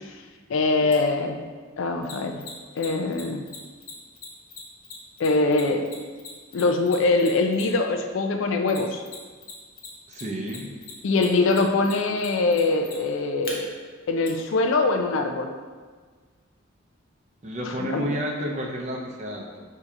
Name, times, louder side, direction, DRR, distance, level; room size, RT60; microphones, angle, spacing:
voice 1, 0.5-1.4 1.8-2.5 2.8-3.4 5.2-5.9 6.5-9.0 11.0-13.7 14.1-15.5 17.7-18.1, left 3 dB, 65° left, 5 dB, 0.4 m, -23 dB
Mechanisms, 0.9-1.0 2.0-7.9 8.7-9.5 9.8-13.5 14.2-14.3, left 5 dB, 45° left, 0.8 m, -40 dB
voice 2, 10.1-10.7 17.4-19.6, equal, 35° right, -1 dB, 0.6 m, -31 dB
4.5 x 2.8 x 3.6 m, 1.5 s
head